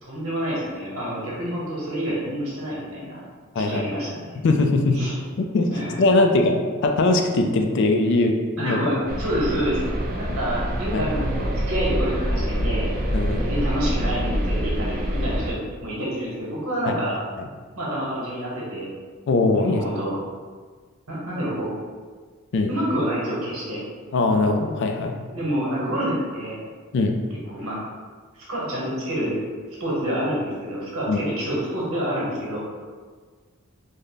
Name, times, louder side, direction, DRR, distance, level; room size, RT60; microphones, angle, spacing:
voice 1, 0.0-3.2 3.5-4.4 4.9-5.1 5.7-6.0 8.6-12.9 13.4-17.1 17.7-18.9 19.7-20.2 21.1-21.7 22.7-23.8 25.3-26.6 27.5-27.8 28.5-29.4 29.8-32.6, equal, 70° right, -6 dB, 1.1 m, -28 dB
voice 2, 4.4-5.0 5.4-8.8 10.9-11.1 13.1-13.4 16.9-17.0 19.3-19.8 22.5-22.7 24.1-25.2 26.9-27.2 31.1-31.2, left 2 dB, 55° left, 4 dB, 0.3 m, -21 dB
sound 1, 9.1-15.5, equal, 40° right, 0.4 m, -26 dB
3.3 x 2.1 x 3.8 m, 1.5 s
head